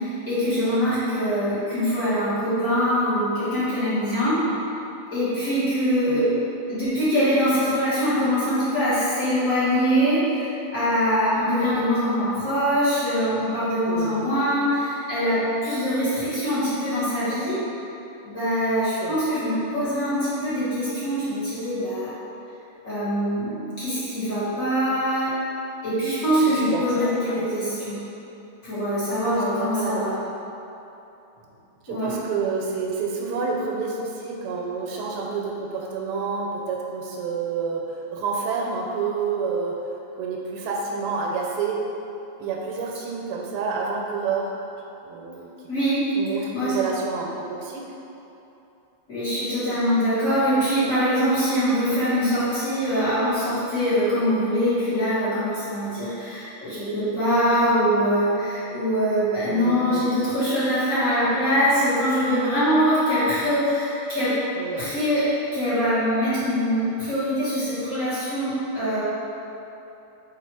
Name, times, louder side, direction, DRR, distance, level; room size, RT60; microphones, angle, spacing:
voice 1, 0.0-4.5 5.1-6.3 6.7-17.6 18.2-22.1 22.8-25.4 25.8-28.0 28.6-30.2 31.9-32.2 45.7-46.1 46.5-46.8 49.1-64.4 64.8-69.0, equal, 45° left, -13 dB, 1.3 m, -23 dB
voice 2, 6.1-6.4 13.8-14.3 19.0-19.2 26.4-27.5 29.3-30.3 31.8-39.8 40.2-41.8 42.4-44.5 45.0-45.5 46.1-47.8 59.5-60.1 64.6-64.9, right 5 dB, 80° right, -1 dB, 1.5 m, -29 dB
4.2 x 2.4 x 4.4 m, 2.9 s
omnidirectional pair, 2.4 m